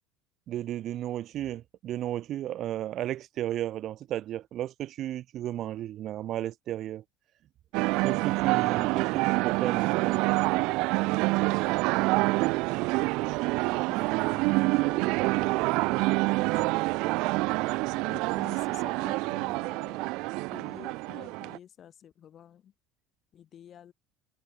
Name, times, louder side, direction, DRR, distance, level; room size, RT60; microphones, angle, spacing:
voice 1, 0.5-7.0 8.0-10.4, right 12 dB, 45° right, 0.8 m, -34 dB
sound 1, 7.7-21.6, right 24 dB, 70° right, 0.4 m, -27 dB
voice 2, 8.0-8.4 12.3-12.6 13.7-15.3 15.6-16.8 18.1-20.1 20.4-22.7 23.3-23.9, left 10 dB, 40° left, 1.8 m, -51 dB
cardioid pair, 135°, 0 cm